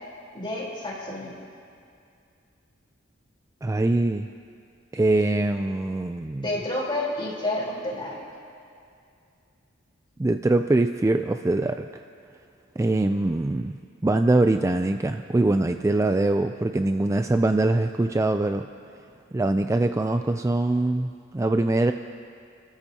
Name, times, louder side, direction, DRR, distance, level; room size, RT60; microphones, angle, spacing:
voice 1, 0.3-1.3 6.4-8.2, left 1 dB, 25° left, -5 dB, 3.8 m, -29 dB
voice 2, 3.6-4.3 4.9-6.5 10.2-11.9 12.8-13.7 14.0-18.7 19.3-21.9, right 2 dB, 15° right, 7 dB, 0.3 m, -23 dB
30.0 x 13.5 x 2.8 m, 2.4 s
head